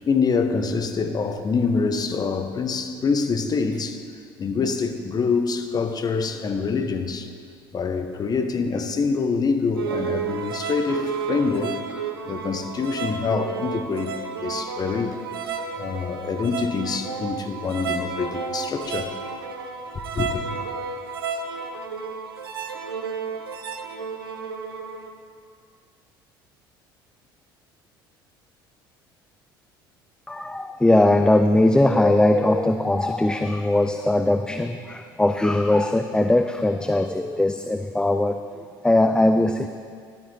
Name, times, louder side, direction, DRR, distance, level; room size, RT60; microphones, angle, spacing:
voice 1, 0.0-4.0 4.4-7.3 7.7-11.8 12.3-15.2 15.8-19.1 20.1-20.3, left 5 dB, 30° left, 7 dB, 1.1 m, -25 dB
sound 1, 9.8-25.1, right 5 dB, 80° right, 0.7 m, -32 dB
voice 2, 30.3-39.7, left 1 dB, 5° left, 7 dB, 0.5 m, -20 dB
13.5 x 12.5 x 3.4 m, 2.1 s
figure-of-eight pair, 60°, 12 cm